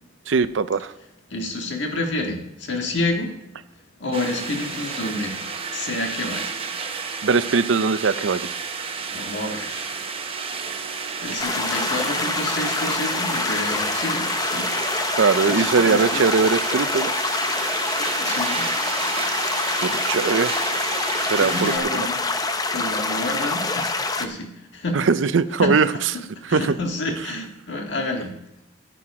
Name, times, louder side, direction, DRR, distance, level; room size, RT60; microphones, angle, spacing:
voice 1, 0.3-0.9 7.2-8.6 15.2-17.1 19.8-20.5 21.3-22.1 24.9-25.9 26.5-26.7, right 5 dB, 85° right, 14 dB, 0.5 m, -20 dB
voice 2, 1.3-3.4 4.0-5.4 5.7-6.7 9.0-10.0 11.2-14.7 15.0-15.1 15.4-16.2 18.0-18.7 21.4-22.1 22.7-23.9 24.2-25.0 25.6-25.8 26.5-28.4, left 2 dB, 70° left, 2 dB, 1.7 m, -29 dB
sound 1, 4.1-21.8, right 5 dB, 30° right, 0.9 m, -31 dB
sound 2, 11.4-24.3, left 3 dB, 20° left, 0.6 m, -26 dB
9.9 x 9.4 x 4.8 m, 0.85 s
head